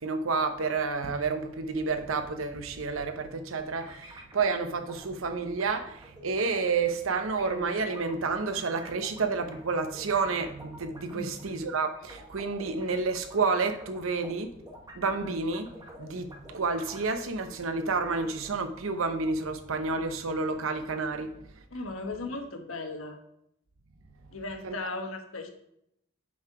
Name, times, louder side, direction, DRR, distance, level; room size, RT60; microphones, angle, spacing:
voice 1, 0.0-14.6 14.9-15.7 16.0-21.4 24.6-24.8, right 4 dB, 90° right, 0.8 m, -30 dB
sound 1, 3.8-4.6 4.9-5.1 5.6-6.9 7.2-12.9 13.3-17.5 17.8-18.5, right 1 dB, 20° right, 1.1 m, -49 dB
voice 2, 21.7-23.2 24.3-25.5, left 2 dB, 90° left, 1.2 m, -36 dB
7.2 x 4.7 x 4.8 m
head